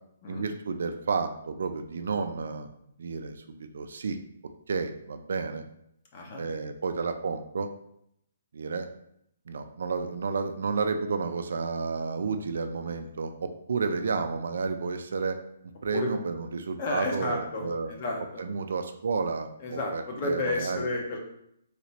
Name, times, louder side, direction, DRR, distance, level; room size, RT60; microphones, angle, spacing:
voice 1, 0.3-2.7 3.0-4.2 4.7-5.6 6.4-7.7 8.5-8.9 9.5-15.4 15.8-17.9 18.4-20.9, right 4 dB, 75° right, 7 dB, 0.3 m, -31 dB
voice 2, 6.1-6.4 15.9-16.1 16.8-18.6 19.6-21.2, left 2 dB, 30° left, 0 dB, 0.7 m, -32 dB
3.3 x 2.9 x 2.8 m, 0.74 s
hypercardioid pair, 165°, 0 cm